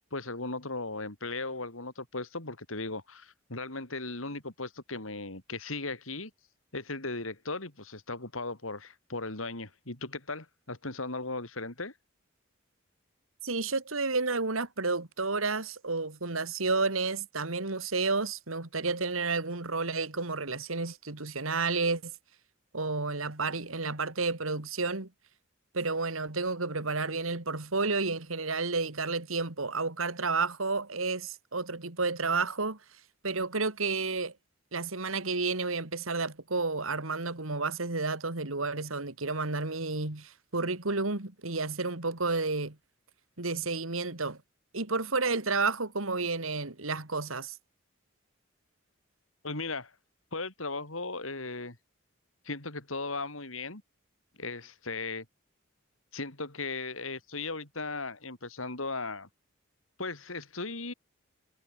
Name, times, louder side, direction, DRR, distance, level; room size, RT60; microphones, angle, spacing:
voice 1, 0.1-6.3 6.7-11.9 49.4-49.9 50.3-51.8 52.4-53.8 54.4-55.3 56.1-59.3 60.0-60.9, left 3 dB, 80° left, 4.4 m, -37 dB
voice 2, 13.4-22.1 22.7-25.1 25.7-32.8 33.2-34.3 34.7-42.8 43.4-44.4 44.7-47.5, right 3 dB, 85° right, 2.6 m, -31 dB
head